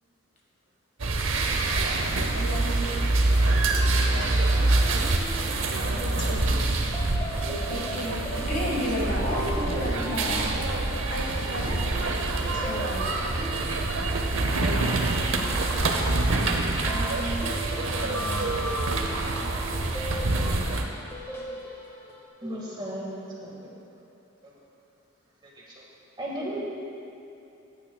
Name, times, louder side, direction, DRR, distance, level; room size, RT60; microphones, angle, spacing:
sound 1, 1.0-20.8, right 2 dB, 65° right, 0.8 m, -26 dB
voice 1, 2.4-3.0 7.7-10.5 12.6-13.3 14.5-15.1 16.9-17.5, equal, 35° left, -3 dB, 1.7 m, -32 dB
sound 2, 3.5-22.2, equal, 10° left, 0.8 m, -39 dB
voice 2, 5.7-6.6 10.9-12.7 15.8-16.3 17.9-18.6, left 1 dB, 55° left, -1 dB, 1.4 m, -39 dB
voice 3, 22.4-23.6 24.4-24.5 25.4-25.8 26.2-26.6, right 1 dB, 20° right, -4 dB, 1.7 m, -35 dB
14.5 x 9.5 x 2.3 m, 2.9 s
head